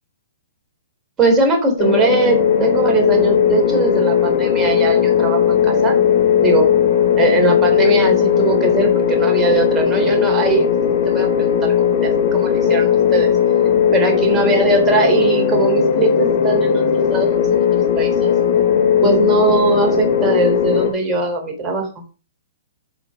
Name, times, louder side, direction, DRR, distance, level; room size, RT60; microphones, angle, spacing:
voice 1, 1.2-6.0 6.4-6.7 7.2-10.7 11.0-13.3 13.9-18.3 19.0-21.9, right 3 dB, 20° right, 2 dB, 4.0 m, -20 dB
sound 1, 1.8-20.9, left 8 dB, 45° left, 5.3 m, -17 dB
10.5 x 6.6 x 5.0 m, 0.34 s
hypercardioid pair, 140°, 0 cm